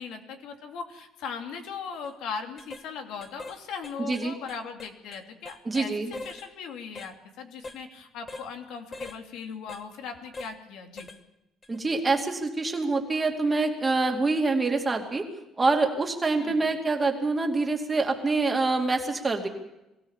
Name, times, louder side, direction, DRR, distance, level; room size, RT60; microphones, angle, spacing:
voice 1, 0.0-5.9 6.2-11.1 16.4-16.6, left 6 dB, 75° left, 4 dB, 2.7 m, -39 dB
sound 1, 1.9-2.1 2.6-2.9 3.2-3.6 3.8-5.9 6.1-6.5 7.0-7.1 7.6-7.8 8.3-8.5 8.9-9.2 9.7-9.8 10.3-10.6 11.0-11.2 11.6-11.8, left 2 dB, 20° left, 1.3 m, -42 dB
voice 2, 4.0-4.3 5.6-6.1 11.7-15.3 15.6-19.5, right 3 dB, 15° right, 3 dB, 2.5 m, -26 dB
22.5 x 16.0 x 7.3 m, 0.93 s
cardioid pair, 145°, 0 cm